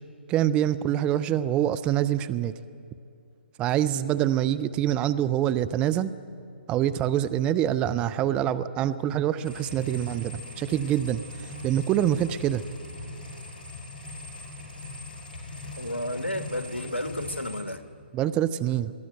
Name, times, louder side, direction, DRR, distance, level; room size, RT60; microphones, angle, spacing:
voice 1, 0.3-2.5 3.6-6.1 6.7-12.6 18.1-18.9, right 11 dB, 15° right, 14 dB, 0.4 m, -25 dB
sound 1, 9.4-17.6, left 2 dB, 50° left, 5.6 m, -41 dB
voice 2, 15.8-17.9, left 1 dB, 90° left, 9 dB, 1.4 m, -32 dB
22.5 x 14.0 x 9.1 m, 2.5 s
figure-of-eight pair, 135°, 6 cm